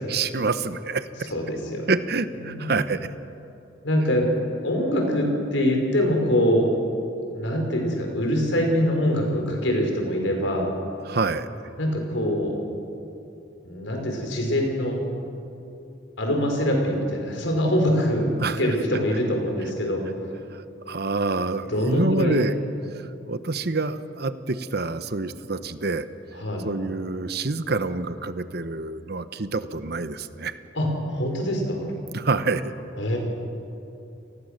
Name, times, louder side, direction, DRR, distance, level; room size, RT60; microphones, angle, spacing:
voice 1, 0.1-1.3 1.9-3.1 11.0-11.5 18.4-18.7 20.5-22.6 22.9-26.0 26.6-30.6 32.1-32.7, right 3 dB, 60° right, 12 dB, 1.0 m, -27 dB
voice 2, 1.3-1.9 2.4-2.7 3.8-4.3 4.6-6.7 7.3-10.7 11.8-12.6 13.6-15.0 16.2-20.0 21.7-22.4 26.4-26.7 30.7-31.9 33.0-33.2, equal, 90° left, 2 dB, 5.0 m, -24 dB
30.0 x 19.5 x 6.6 m, 2.7 s
head